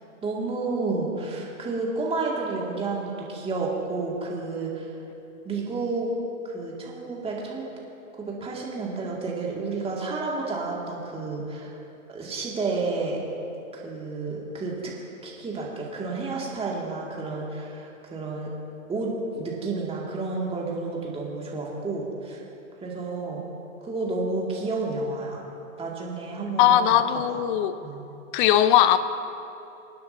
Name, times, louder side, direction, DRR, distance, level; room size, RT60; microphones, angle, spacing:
voice 1, 0.2-4.9 5.4-6.1 6.4-7.7 8.1-11.7 12.1-13.2 13.7-14.9 15.2-18.5 18.9-22.4 22.8-23.5 23.8-25.4 25.8-27.0 27.3-27.4 27.8-28.0, right 3 dB, 15° right, -3 dB, 2.6 m, -31 dB
voice 2, 26.6-27.7 28.3-29.0, left 11 dB, 40° left, 13 dB, 0.6 m, -19 dB
25.0 x 9.6 x 2.9 m, 2.9 s
hypercardioid pair, 115°, 41 cm